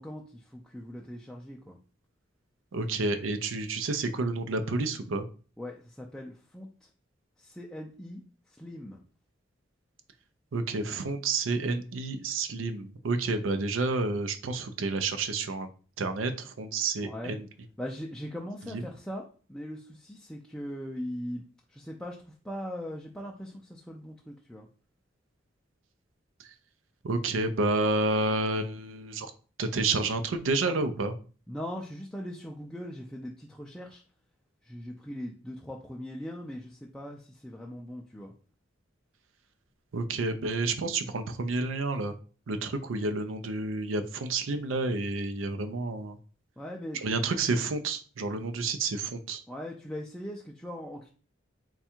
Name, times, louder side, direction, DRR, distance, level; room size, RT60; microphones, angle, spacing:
voice 1, 0.0-1.8 5.6-6.7 7.4-8.2 8.5-9.0 17.0-17.4 17.8-21.4 21.7-24.7 31.5-34.0 34.6-38.3 46.6-47.1 49.5-51.1, equal, 5° left, -2 dB, 0.3 m, -40 dB
voice 2, 2.7-5.2 10.5-15.7 16.0-17.5 18.7-18.8 27.0-29.3 29.6-31.1 39.9-42.1 42.5-46.2 47.0-49.4, right 3 dB, 90° right, 8 dB, 0.5 m, -30 dB
3.5 x 2.3 x 4.3 m, 0.39 s
head